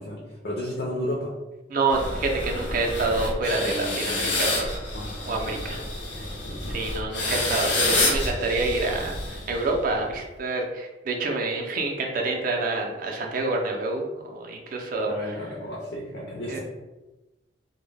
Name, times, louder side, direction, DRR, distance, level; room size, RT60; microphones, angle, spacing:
voice 1, 0.0-1.3 3.6-4.4 4.9-5.7 6.2-6.8 15.1-16.6, left 1 dB, 60° left, -3 dB, 0.4 m, -34 dB
voice 2, 1.7-4.7 5.3-5.8 6.7-15.3 16.5-16.6, right 3 dB, 50° right, 1 dB, 0.4 m, -27 dB
sound 1, 1.9-9.9, left 2 dB, 85° left, 0.8 m, -28 dB
2.1 x 2.1 x 3.2 m, 1.1 s
head